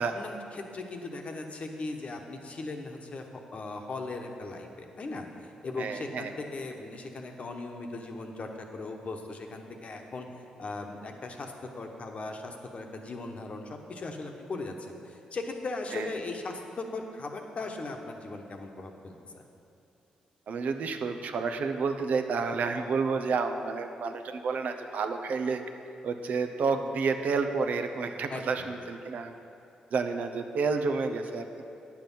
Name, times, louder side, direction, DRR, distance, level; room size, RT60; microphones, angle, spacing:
voice 1, 0.0-10.3 10.6-19.4 28.3-28.7, left 3 dB, 50° left, 3 dB, 1.1 m, -38 dB
voice 2, 5.8-6.3 15.9-16.1 20.5-25.6 26.0-29.3 29.9-31.6, right 4 dB, 65° right, 7 dB, 0.7 m, -30 dB
9.2 x 7.3 x 5.6 m, 2.6 s
supercardioid pair, 60°, 3 cm